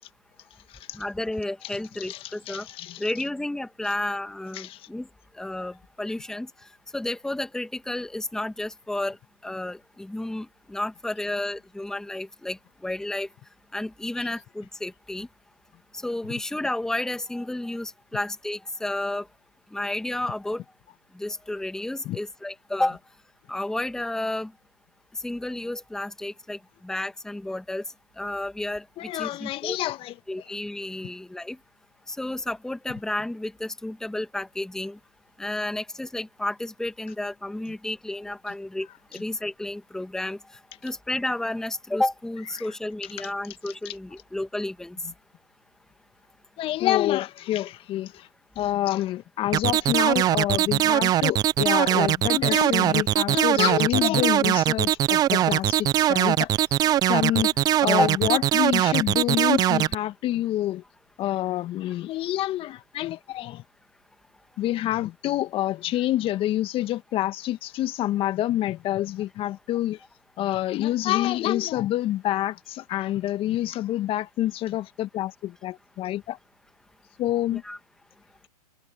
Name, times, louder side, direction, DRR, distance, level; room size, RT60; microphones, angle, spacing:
voice 1, 0.9-2.7 3.0-5.1 5.4-6.5 6.9-9.2 9.4-13.3 13.7-15.3 15.9-19.3 19.7-20.6 21.2-23.0 23.5-24.5 25.2-27.8 28.2-28.8 29.1-29.8 30.3-31.6 32.1-35.0 35.4-40.4 40.8-45.0 51.9-52.0 57.2-57.4 57.9-58.1 77.6-77.8, left 1 dB, 5° left, 1.9 m, -31 dB
voice 2, 2.0-3.0 4.5-4.9 22.1-22.2 29.0-30.1 42.6-42.7 43.2-43.3 43.7-43.9 46.6-48.3 48.6-56.5 57.1-57.5 57.8-60.8 61.2-63.6 64.6-70.0 70.4-76.4 77.2-77.6, left 14 dB, 25° left, 1.9 m, -27 dB
sound 1, 49.5-59.9, right 12 dB, 20° right, 0.6 m, -21 dB
hypercardioid pair, 120°, 20 cm